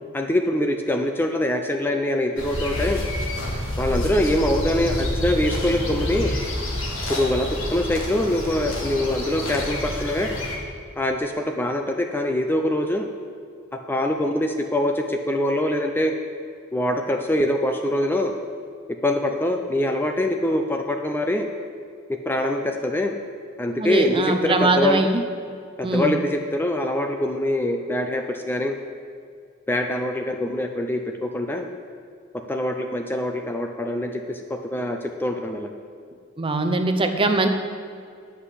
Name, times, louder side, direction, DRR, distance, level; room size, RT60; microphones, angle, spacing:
voice 1, 0.1-3.0 3.8-6.3 7.1-10.4 11.0-13.1 13.9-16.1 16.7-18.3 19.0-21.5 22.1-23.1 23.6-25.1 25.8-28.7 29.7-31.7 32.5-35.7, left 1 dB, 10° left, 4 dB, 0.5 m, -24 dB
sound 1, 2.4-10.6, left 1 dB, 65° left, 1.9 m, -28 dB
voice 2, 23.8-25.2 25.8-26.1 36.4-37.5, right 2 dB, 25° right, 6 dB, 0.7 m, -21 dB
10.0 x 5.7 x 8.1 m, 2.3 s
head